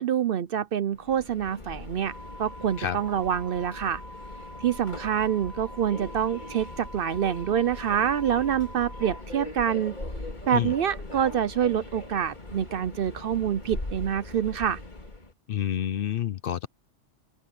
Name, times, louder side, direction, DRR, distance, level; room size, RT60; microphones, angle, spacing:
voice 1, 0.0-2.1 2.4-4.0 4.6-10.0 10.5-14.8, right 9 dB, 60° right, 0.7 m, -26 dB
Subway metro underground, 0.9-15.3, left 2 dB, 40° left, 2.5 m, -40 dB
sound 1, 2.0-9.2, equal, ahead, 2.3 m, -45 dB
voice 2, 15.5-16.7, left 10 dB, 60° left, 0.7 m, -28 dB
open air
omnidirectional pair, 1.2 m